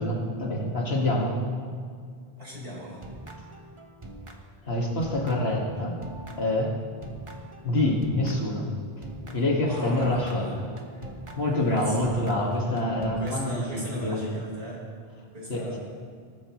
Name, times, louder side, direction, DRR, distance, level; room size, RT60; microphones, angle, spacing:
voice 1, 0.0-1.4 4.6-6.0 6.4-6.8 7.6-8.7 9.0-9.1 9.3-10.7 11.4-14.4 15.5-15.8, left 1 dB, 80° left, -1 dB, 2.3 m, -26 dB
voice 2, 2.4-3.0 9.3-10.5 11.4-12.0 13.2-14.8 15.3-15.8, right 1 dB, 70° right, -5 dB, 4.7 m, -39 dB
sound 1, 2.9-4.7 5.0-8.6 9.0-13.6, right 2 dB, 30° right, 1.1 m, -44 dB
19.0 x 13.0 x 3.2 m, 2.1 s
omnidirectional pair, 1.0 m